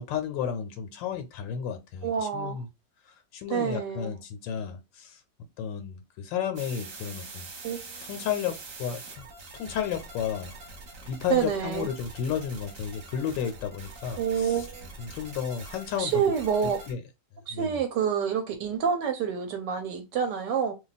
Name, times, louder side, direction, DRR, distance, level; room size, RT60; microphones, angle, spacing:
voice 1, 0.0-2.7 3.0-5.2 5.6-7.4 8.0-9.2 9.6-10.5 11.0-14.7 15.0-16.2 16.9-17.0 17.5-17.8, left 8 dB, 85° left, 1.3 m, -33 dB
voice 2, 2.0-2.6 3.5-4.1 7.6-8.0 11.3-11.9 14.2-14.9 16.0-16.8 17.5-20.7, right 7 dB, 75° right, 1.2 m, -28 dB
sound 1, 6.6-16.9, right 3 dB, 55° right, 1.1 m, -44 dB
2.9 x 2.2 x 3.9 m
omnidirectional pair, 2.0 m